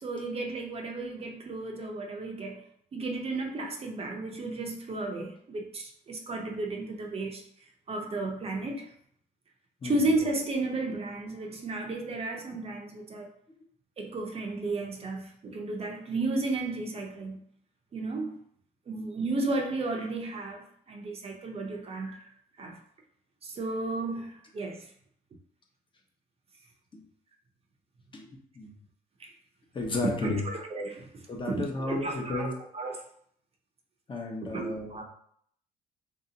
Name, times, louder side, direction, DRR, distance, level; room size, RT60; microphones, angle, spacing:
voice 1, 0.0-2.6 2.9-7.4 7.9-8.9 9.8-13.3 14.0-17.4 17.9-18.4 18.9-22.3 22.6-22.8 23.4-24.9 29.2-29.3 30.0-33.0 34.5-35.0, right 2 dB, 35° right, 2 dB, 0.7 m, -33 dB
voice 2, 9.8-10.1 26.9-27.0 28.1-28.3 28.5-28.7 29.7-30.4 31.3-32.5 34.1-35.0, left 2 dB, 30° left, 0 dB, 0.9 m, -33 dB
3.2 x 2.8 x 3.9 m, 0.65 s
cardioid pair, 110°, 17 cm